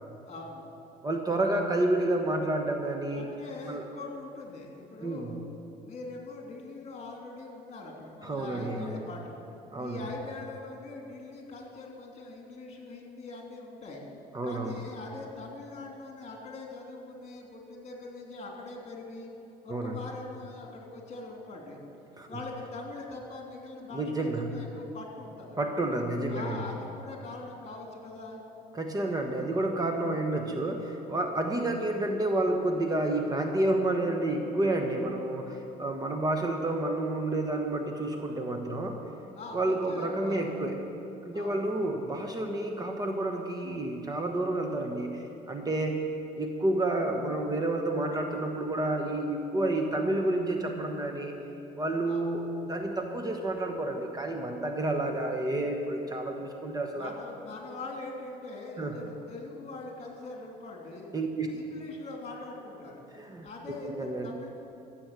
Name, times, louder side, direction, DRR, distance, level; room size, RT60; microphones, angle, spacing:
voice 1, 0.3-0.7 3.1-5.4 5.8-9.4 9.8-14.0 14.4-19.3 19.6-21.8 22.3-25.6 26.3-28.4 39.4-40.4 41.3-41.7 52.1-52.4 56.9-61.1 61.5-63.1 63.4-64.5, left 3 dB, 40° left, 0 dB, 3.0 m, -42 dB
voice 2, 1.0-3.3 3.7-3.8 5.0-5.4 8.2-8.9 9.7-10.0 14.3-14.7 19.7-20.0 22.2-22.3 23.9-24.5 25.6-26.6 28.7-39.1 39.5-40.8 41.2-46.0 46.4-51.3 51.8-57.1 58.8-59.0 61.1-61.5 63.1-63.5 64.0-64.3, right 2 dB, 20° right, 3 dB, 1.2 m, -30 dB
14.5 x 7.6 x 8.2 m, 2.9 s
cardioid pair, 110°, 17 cm